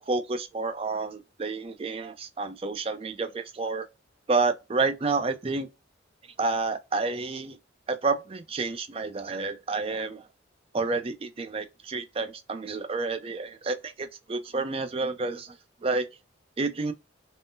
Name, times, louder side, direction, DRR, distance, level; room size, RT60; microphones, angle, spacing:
voice 1, 0.1-3.9 4.3-5.7 6.4-7.6 7.9-10.2 10.7-15.5 15.8-16.1 16.6-16.9, right 3 dB, 30° right, 0.4 m, -29 dB
3.6 x 2.0 x 2.6 m
head